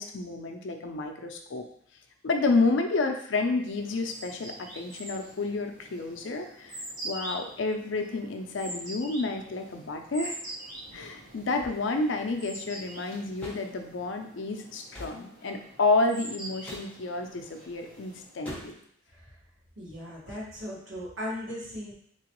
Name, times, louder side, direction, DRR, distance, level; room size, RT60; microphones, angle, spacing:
voice 1, 0.0-1.7 2.2-10.4 10.9-18.8, left 3 dB, 60° left, 5 dB, 0.4 m, -30 dB
sound 1, 3.6-18.5, right 1 dB, 45° right, 1.2 m, -44 dB
sound 2, 13.4-13.7 14.9-15.2 16.6-16.9 18.4-18.9, equal, 5° left, 0.7 m, -41 dB
voice 2, 19.8-21.9, left 1 dB, 70° right, -5 dB, 1.3 m, -37 dB
3.8 x 3.0 x 2.9 m, 0.64 s
head